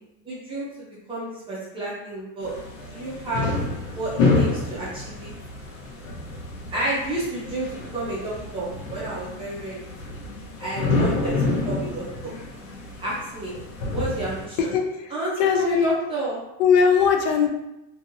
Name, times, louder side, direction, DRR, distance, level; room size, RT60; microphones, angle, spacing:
voice 1, 0.2-2.6 2.9-3.5 3.9-5.3 6.7-9.9 10.6-12.3 13.0-13.5 13.9-14.7 15.1-16.4, right 2 dB, 15° right, -7 dB, 0.4 m, -30 dB
sound 1, 2.4-14.5, left 3 dB, 80° left, 0.9 m, -28 dB
voice 2, 14.6-15.9 16.6-17.5, left 6 dB, 60° left, 4 dB, 0.5 m, -20 dB
2.7 x 2.6 x 2.5 m, 0.91 s
supercardioid pair, 155°, 41 cm